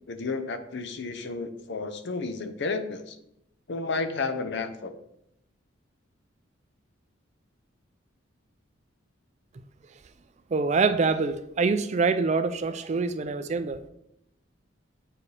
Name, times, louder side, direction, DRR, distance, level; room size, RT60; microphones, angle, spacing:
voice 1, 0.1-3.1 3.7-4.9, left 3 dB, 60° left, 8 dB, 0.6 m, -32 dB
voice 2, 10.5-13.8, right 4 dB, 35° right, 10 dB, 0.4 m, -25 dB
8.3 x 4.6 x 3.3 m, 0.77 s
head